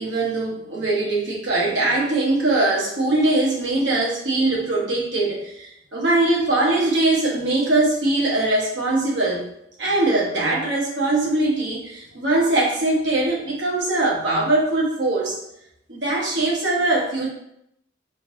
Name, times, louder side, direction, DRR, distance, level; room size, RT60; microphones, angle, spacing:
voice 1, 0.0-9.5 9.8-15.4 15.9-17.3, right 2 dB, 70° right, -4 dB, 1.0 m, -21 dB
3.7 x 2.8 x 2.6 m, 0.78 s
head